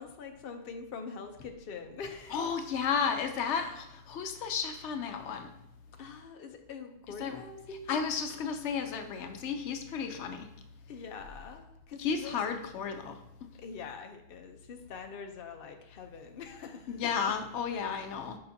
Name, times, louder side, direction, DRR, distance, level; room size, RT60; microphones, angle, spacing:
voice 1, 0.0-2.5 3.5-3.8 6.0-8.0 9.9-10.2 10.9-12.4 13.6-17.3, left 5 dB, 60° left, 5 dB, 0.8 m, -44 dB
voice 2, 2.3-5.5 7.2-7.4 7.9-10.5 12.0-13.2 16.9-18.4, left 6 dB, 90° left, 6 dB, 0.9 m, -33 dB
6.7 x 5.7 x 2.7 m, 0.85 s
omnidirectional pair, 1.1 m